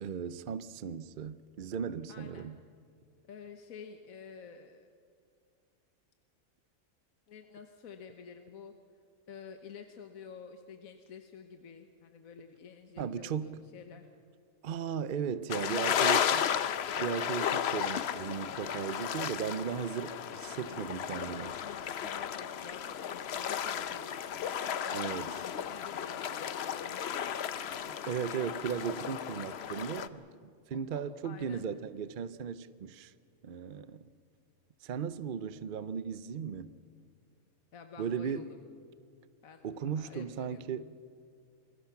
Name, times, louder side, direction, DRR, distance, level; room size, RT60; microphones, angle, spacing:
voice 1, 0.0-2.6 13.0-13.6 14.6-16.4 17.0-21.6 24.9-25.3 28.1-30.3 30.7-33.1 33.4-34.1 34.8-36.7 38.0-38.5 39.6-40.9, right 7 dB, 50° right, 0.6 m, -36 dB
voice 2, 2.1-2.5 3.3-4.9 7.3-8.7 9.3-14.1 15.6-16.3 21.6-28.1 30.9-31.6 37.7-38.6 39.4-40.7, left 6 dB, 75° left, 1.5 m, -50 dB
sound 1, 15.5-30.1, left 8 dB, 55° left, 0.9 m, -34 dB
28.0 x 21.5 x 5.9 m
omnidirectional pair, 1.5 m